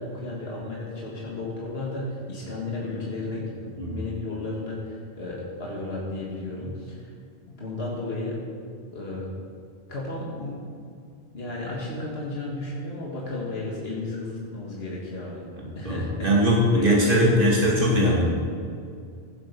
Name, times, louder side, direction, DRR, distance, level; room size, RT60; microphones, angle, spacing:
voice 1, 0.0-7.0 7.5-8.4 8.9-9.3 9.9-10.6 11.3-15.5 15.8-17.2, left 2 dB, 70° left, -4 dB, 2.2 m, -33 dB
voice 2, 15.5-18.2, equal, 55° right, -4 dB, 2.8 m, -21 dB
16.0 x 7.7 x 5.3 m, 2.3 s
omnidirectional pair, 1.1 m